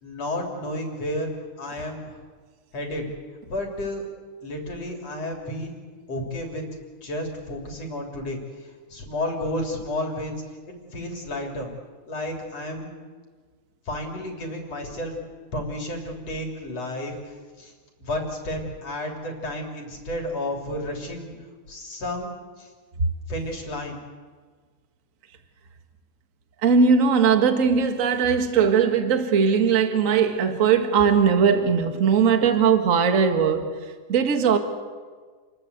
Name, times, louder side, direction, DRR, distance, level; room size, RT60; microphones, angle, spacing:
voice 1, 0.0-1.3 1.6-2.2 2.7-3.1 3.5-4.1 4.4-5.8 6.1-6.6 7.0-11.7 12.1-13.0 13.9-15.2 15.5-17.7 18.0-21.3 21.7-22.7 23.3-24.0, left 1 dB, 55° left, 2 dB, 4.2 m, -32 dB
voice 2, 26.6-33.7 34.1-34.6, right 6 dB, 30° right, 7 dB, 1.7 m, -19 dB
29.0 x 21.5 x 8.1 m, 1.5 s
omnidirectional pair, 3.4 m